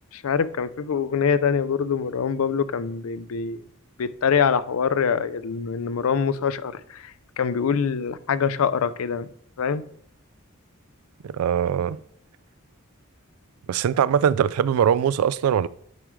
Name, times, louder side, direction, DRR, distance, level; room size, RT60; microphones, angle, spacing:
voice 1, 0.1-3.6 4.0-7.1 7.4-9.3 9.6-9.8, left 6 dB, 75° left, 0.5 m, -24 dB
voice 2, 11.2-12.0 13.7-15.7, right 8 dB, 85° right, 0.3 m, -21 dB
9.3 x 4.9 x 3.1 m
head